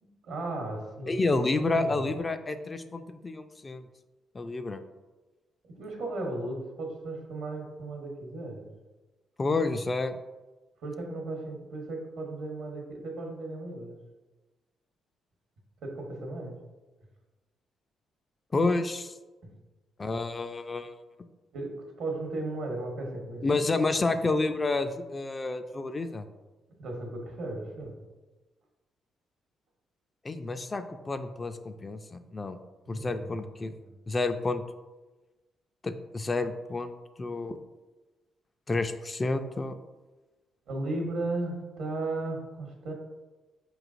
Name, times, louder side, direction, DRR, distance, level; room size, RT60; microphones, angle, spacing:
voice 1, 0.0-1.1 1.6-2.0 5.6-8.7 10.8-14.0 15.8-16.6 21.5-21.7 22.0-23.6 26.8-28.0 32.9-33.4 33.8-33.9 40.7-42.9, right 2 dB, 75° right, 1 dB, 0.9 m, -35 dB
voice 2, 1.1-3.8 4.3-4.8 9.4-10.2 18.5-19.1 20.0-20.9 23.4-26.3 30.2-32.6 32.9-33.7 34.1-34.6 35.8-36.9 37.2-37.6 38.7-39.8, left 3 dB, 30° left, 8 dB, 0.3 m, -29 dB
4.7 x 3.1 x 2.5 m, 1.2 s
supercardioid pair, 60°, 0 cm